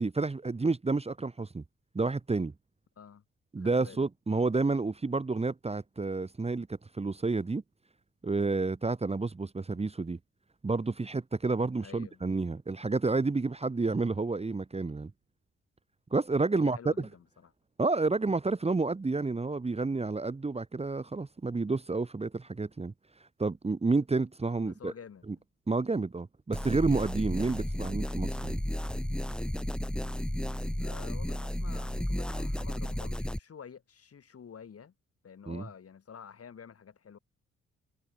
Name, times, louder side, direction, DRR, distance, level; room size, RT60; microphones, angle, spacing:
voice 1, 0.0-1.6 1.9-2.5 3.5-7.6 8.2-10.2 10.6-15.1 16.1-17.1 17.8-22.9 23.4-24.9 25.7-28.6 35.5-35.6, right 3 dB, 20° right, 1.2 m, -30 dB
voice 2, 3.6-4.0 11.8-12.2 16.5-17.5 24.6-25.2 30.8-34.9 35.2-37.2, left 7 dB, 55° left, 5.3 m, -49 dB
sound 1, 26.5-33.4, left 1 dB, 5° left, 1.0 m, -33 dB
supercardioid pair, 55°, 29 cm